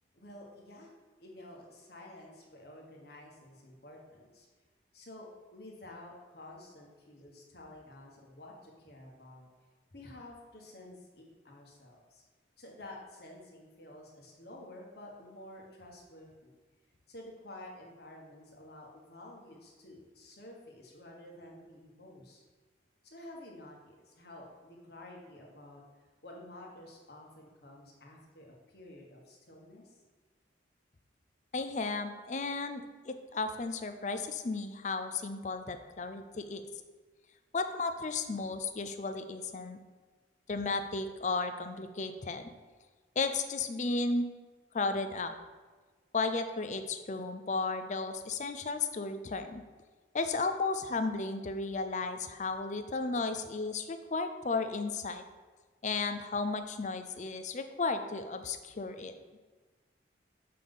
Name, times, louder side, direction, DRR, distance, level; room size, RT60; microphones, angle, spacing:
voice 1, 0.1-0.9 1.2-4.5 4.9-9.5 9.9-12.2 12.6-16.6 17.1-22.4 23.0-25.8 26.2-30.0, left 1 dB, 55° left, -1 dB, 1.4 m, -51 dB
voice 2, 31.5-36.6 37.5-39.8 40.5-42.5 43.2-44.3 44.7-45.4 46.1-49.6 50.1-55.2 55.8-59.1, left 3 dB, 40° left, 8 dB, 0.5 m, -34 dB
6.6 x 3.9 x 5.4 m, 1.4 s
head